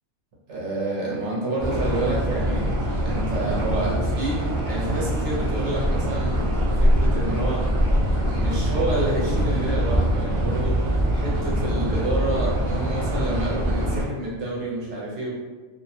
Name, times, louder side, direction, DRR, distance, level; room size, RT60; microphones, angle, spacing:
voice 1, 0.5-2.7 3.0-6.5 6.8-7.7 8.2-10.8 11.1-15.4, right 2 dB, 65° right, -5 dB, 0.8 m, -29 dB
sound 1, 1.6-14.0, equal, 25° right, 0.3 m, -23 dB
2.5 x 2.0 x 2.6 m, 1.3 s
omnidirectional pair, 1.4 m